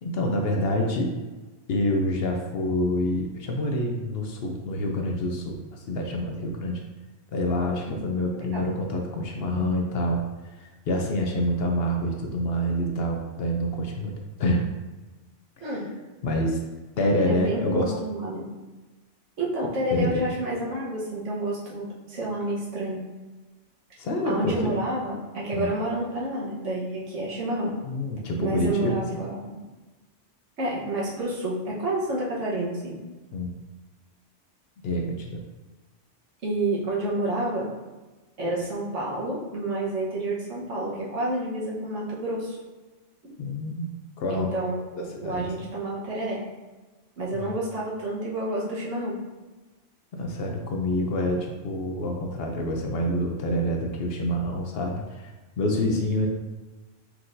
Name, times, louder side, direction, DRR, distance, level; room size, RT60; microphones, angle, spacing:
voice 1, 0.0-1.1 1.7-6.8 7.3-10.2 10.6-14.1 14.4-14.7 15.6-15.8 16.2-16.6 17.0-17.9 19.9-20.3 24.0-24.7 25.5-25.7 27.8-28.9 33.3-33.6 34.8-35.4 43.4-43.9 44.2-44.5 45.0-45.7 47.3-47.5 50.1-55.3 55.6-56.3, left 1 dB, 65° left, 2 dB, 0.7 m, -27 dB
voice 2, 7.9-8.7 15.6-15.9 17.3-18.4 19.4-23.0 24.2-27.7 28.4-29.6 30.6-33.0 36.4-37.7 38.4-42.6 43.2-43.3 44.3-46.4 47.2-49.2 55.7-56.0, right 1 dB, 80° right, -6 dB, 1.4 m, -29 dB
4.5 x 3.7 x 2.6 m, 1.2 s
omnidirectional pair, 1.2 m